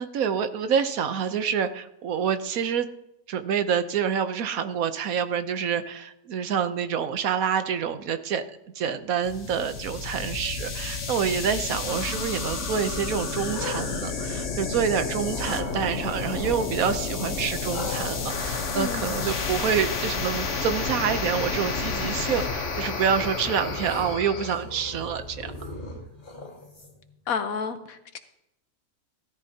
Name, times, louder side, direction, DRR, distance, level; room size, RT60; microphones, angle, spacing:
voice 1, 0.0-2.9 3.3-8.4 8.7-25.5, right 7 dB, 80° right, 10 dB, 1.3 m, -27 dB
sound 1, 9.2-24.5, left 4 dB, 60° left, 1.4 m, -31 dB
sound 2, 13.4-14.9 15.3-15.8 17.7-27.2, left 2 dB, 30° left, 2.2 m, -41 dB
voice 2, 18.7-19.2 27.3-28.2, left 5 dB, 80° left, 9 dB, 1.4 m, -31 dB
sound 3, 20.3-26.2, equal, 5° right, 4.0 m, -45 dB
16.0 x 13.0 x 2.8 m, 0.85 s
omnidirectional pair, 1.5 m